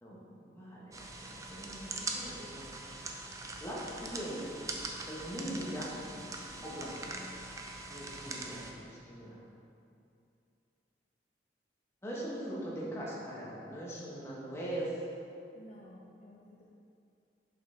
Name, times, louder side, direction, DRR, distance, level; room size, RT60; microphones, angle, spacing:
voice 1, 0.0-2.7 3.2-4.4 5.1-5.9 6.6-7.0 7.9-9.4 12.0-14.9, right 1 dB, 15° left, -6 dB, 1.2 m, -41 dB
sound 1, 0.9-8.7, right 2 dB, 20° right, 0.4 m, -42 dB
voice 2, 6.6-7.4 15.5-16.6, left 1 dB, 40° left, -4 dB, 0.6 m, -54 dB
6.3 x 5.5 x 3.8 m, 2.6 s
head